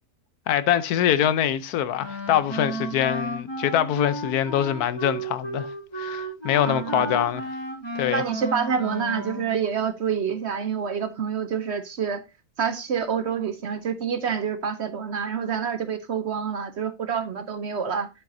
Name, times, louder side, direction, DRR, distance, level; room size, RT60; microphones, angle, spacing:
voice 1, 0.5-5.7 6.0-7.5 7.9-8.2, left 10 dB, 80° left, 1.2 m, -24 dB
Wind instrument woodwind instrument, 2.0-9.5, right 1 dB, 15° left, 5.0 m, -33 dB
voice 2, 6.7-7.2 8.1-12.2 12.6-18.1, right 7 dB, 55° right, 0.8 m, -27 dB
10.5 x 8.0 x 2.6 m
omnidirectional pair, 1.6 m